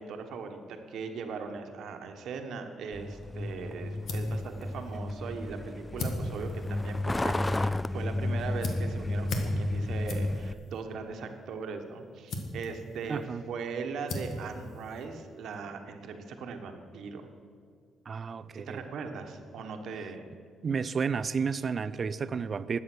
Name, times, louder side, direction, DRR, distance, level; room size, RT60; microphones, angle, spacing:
voice 1, 0.0-17.2 18.7-20.2, right 5 dB, 70° right, 5 dB, 1.3 m, -39 dB
Truck, 2.9-10.5, left 2 dB, 15° left, 0.3 m, -32 dB
sound 1, 3.5-15.6, left 1 dB, 65° left, 1.7 m, -40 dB
voice 2, 13.1-13.4 18.1-18.8 20.6-22.8, right 5 dB, 45° right, 15 dB, 0.5 m, -31 dB
12.5 x 8.5 x 6.2 m, 2.3 s
cardioid pair, 90°, 0 cm